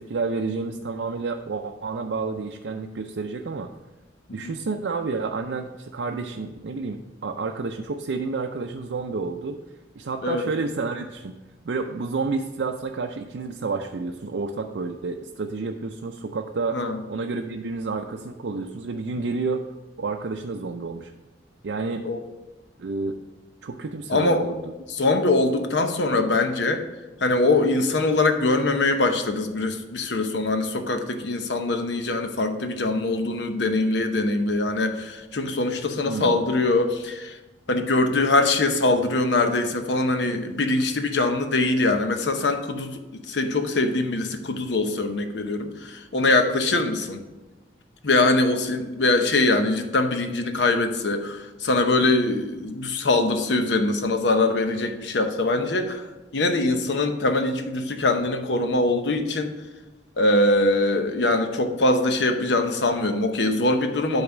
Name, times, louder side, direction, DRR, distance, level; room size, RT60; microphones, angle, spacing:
voice 1, 0.0-3.7 4.3-9.6 10.0-11.4 11.6-16.8 17.1-19.6 20.0-21.1 21.6-22.0 22.8-23.2 23.6-24.6 36.0-36.4, right 4 dB, 85° right, 3 dB, 0.5 m, -30 dB
voice 2, 24.1-24.5 24.9-26.8 27.2-37.4 37.7-47.2 48.0-56.1 56.3-59.5 60.2-64.2, left 2 dB, 80° left, 6 dB, 0.8 m, -23 dB
8.6 x 4.1 x 5.9 m, 1.1 s
head